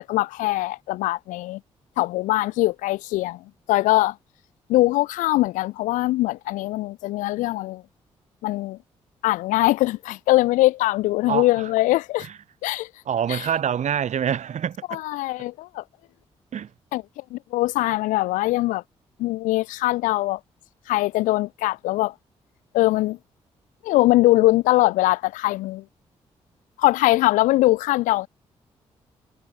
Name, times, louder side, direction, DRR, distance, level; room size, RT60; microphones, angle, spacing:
voice 1, 0.0-1.6 2.0-4.1 4.7-7.8 8.4-8.8 9.2-12.3 12.6-12.9 13.3-13.5 14.9-15.8 16.9-17.0 17.3-18.8 19.2-20.4 20.9-22.1 22.7-23.2 23.8-25.8 26.8-28.3, left 18 dB, 85° left, 1.3 m, -22 dB
voice 2, 11.3-11.6 13.1-15.0 16.5-16.7, right 9 dB, 65° right, 5.4 m, -26 dB
supercardioid pair, 50°, 13 cm